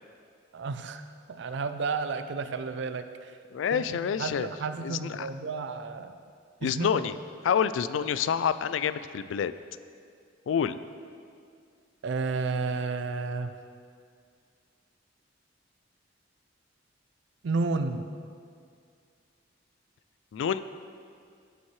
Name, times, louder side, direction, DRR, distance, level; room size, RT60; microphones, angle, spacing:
voice 1, 0.5-1.0 1.3-3.3 3.7-6.2 6.6-7.1 12.0-13.5 17.4-18.1, right 4 dB, 65° right, 10 dB, 0.4 m, -32 dB
voice 2, 3.5-4.5 4.8-5.3 6.6-7.1 7.4-9.5 10.5-10.8 20.3-20.6, left 7 dB, 70° left, 14 dB, 0.3 m, -27 dB
11.0 x 7.2 x 3.2 m, 2.3 s
head